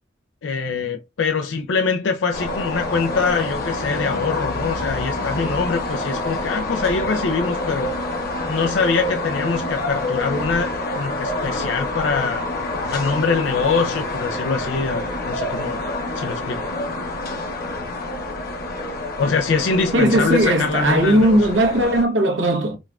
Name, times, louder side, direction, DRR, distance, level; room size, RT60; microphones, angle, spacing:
voice 1, 0.4-7.9 8.5-12.5 12.9-15.8 16.2-16.6 19.2-21.5, left 5 dB, 85° left, 0.5 m, -23 dB
sound 1, 2.3-22.0, left 1 dB, 55° left, 1.0 m, -27 dB
voice 2, 19.9-22.8, right 1 dB, 85° right, 1.0 m, -18 dB
5.0 x 2.3 x 2.4 m
head